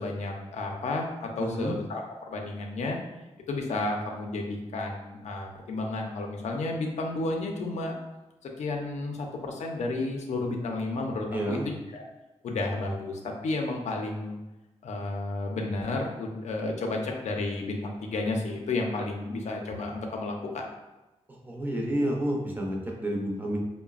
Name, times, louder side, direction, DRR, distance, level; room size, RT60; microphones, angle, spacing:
voice 1, 0.0-3.0 3.5-7.9 8.4-12.0 12.4-14.4 14.8-20.6, left 2 dB, 85° left, 1 dB, 0.4 m, -32 dB
voice 2, 1.4-1.8 11.3-11.7 21.4-23.6, right 1 dB, 15° right, -1 dB, 0.5 m, -29 dB
3.8 x 2.0 x 2.4 m, 1.0 s
wide cardioid pair, 120°, 11 cm